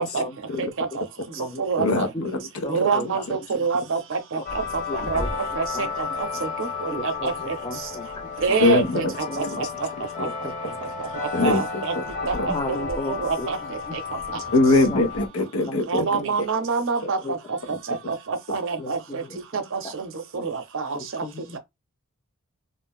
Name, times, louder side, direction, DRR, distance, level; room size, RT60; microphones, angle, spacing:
voice 1, 0.0-0.7 1.4-1.6 2.1-3.2 4.4-4.5 4.9-5.3 5.7-5.9 6.9-8.7 9.0-9.5 10.2-10.7 12.5-13.5 13.9-14.0 14.3-14.4 14.9-15.0 15.7-16.4 17.2-17.3 18.8-19.2 19.8-19.9 20.4-20.5 20.9-21.6, left 2 dB, 20° left, 0.4 m, -35 dB
voice 2, 0.6-2.1 2.7-5.2 5.6-7.9 8.4-9.7 10.2-10.3 10.8-11.9 12.3-14.4 15.9-19.2 19.5-21.2 21.5-21.6, right 5 dB, 60° right, 0.6 m, -27 dB
voice 3, 1.8-2.7 8.6-9.0 11.3-11.6 12.0-12.1 12.3-12.5 14.5-16.2, left 2 dB, 65° left, 0.6 m, -21 dB
sound 1, 4.4-15.3, left 4 dB, 35° left, 0.8 m, -32 dB
2.5 x 2.0 x 3.6 m
head